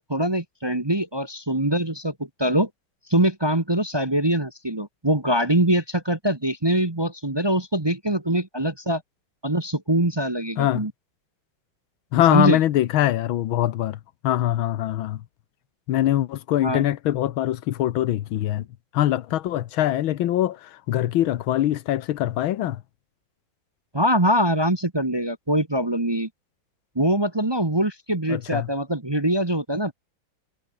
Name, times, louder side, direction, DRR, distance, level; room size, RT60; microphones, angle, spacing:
voice 1, 0.0-2.1 2.4-2.7 3.1-9.0 9.4-10.9 12.3-12.6 16.6-16.8 23.9-26.3 26.9-29.9, right 1 dB, 15° right, 1.0 m, -23 dB
voice 2, 12.1-15.2 15.9-18.7 18.9-22.8 28.3-28.7, left 13 dB, 90° left, 1.7 m, -23 dB
omnidirectional pair, 2.2 m